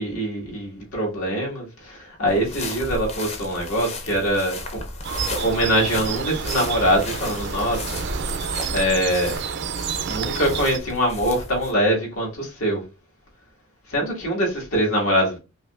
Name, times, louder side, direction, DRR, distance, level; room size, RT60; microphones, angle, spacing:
voice 1, 0.0-4.8 5.2-7.9 8.7-9.4 10.1-12.8 13.9-15.4, equal, 80° left, 1.9 m, -23 dB
sound 1, 2.3-11.7, left 2 dB, 30° left, 0.6 m, -34 dB
sound 2, 5.0-10.8, right 7 dB, 50° right, 0.3 m, -30 dB
5.2 x 2.6 x 2.4 m
head